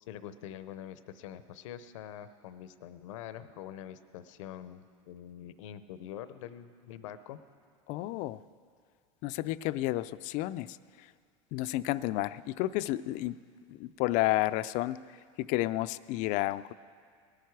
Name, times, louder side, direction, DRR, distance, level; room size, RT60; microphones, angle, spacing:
voice 1, 0.1-7.4, left 10 dB, 80° left, 12 dB, 0.7 m, -45 dB
voice 2, 7.9-8.4 9.2-11.1 11.5-13.4 13.7-15.0 15.4-16.7, left 16 dB, 50° left, 15 dB, 0.4 m, -31 dB
19.5 x 11.5 x 4.7 m, 2.1 s
supercardioid pair, 120°, 16 cm